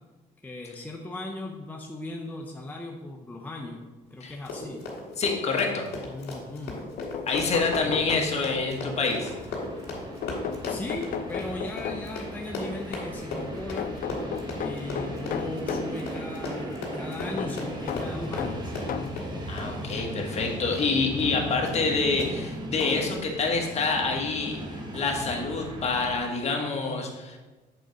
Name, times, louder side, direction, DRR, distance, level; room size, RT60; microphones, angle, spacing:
voice 1, 0.4-3.8 4.1-4.8 6.1-6.8 7.5-8.1 10.7-13.9 14.6-18.8, left 2 dB, 10° left, 0 dB, 0.6 m, -37 dB
Run, 4.3-20.9 21.2-21.4 21.7-21.9 22.2-22.3 22.8-22.9, left 2 dB, 85° left, 2.2 m, -36 dB
voice 2, 5.2-5.9 7.3-9.3 19.5-24.6 24.9-27.4, left 4 dB, 40° left, 1 dB, 1.3 m, -27 dB
sound 1, 6.7-6.8 7.0-8.7 10.2-12.3 13.8-16.0 17.4-19.3 20.1-20.2 21.5-21.6 22.0-22.1, left 8 dB, 60° left, 0.5 m, -35 dB
Train, 7.2-26.2, right 1 dB, 25° right, 1.1 m, -38 dB
7.7 x 3.9 x 5.1 m, 1.2 s
cardioid pair, 120°, 16 cm